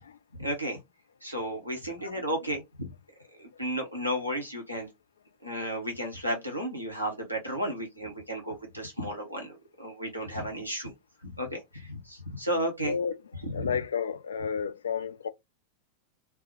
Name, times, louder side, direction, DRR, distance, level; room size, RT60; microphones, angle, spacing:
voice 1, 0.4-0.8 1.2-2.9 3.4-4.9 5.4-10.9 11.2-12.9 13.4-13.8, equal, 90° left, 0.9 m, -33 dB
voice 2, 12.8-13.2 13.5-15.3, left 6 dB, 65° left, 0.3 m, -32 dB
3.5 x 2.0 x 2.8 m
figure-of-eight pair, 90°, 0 cm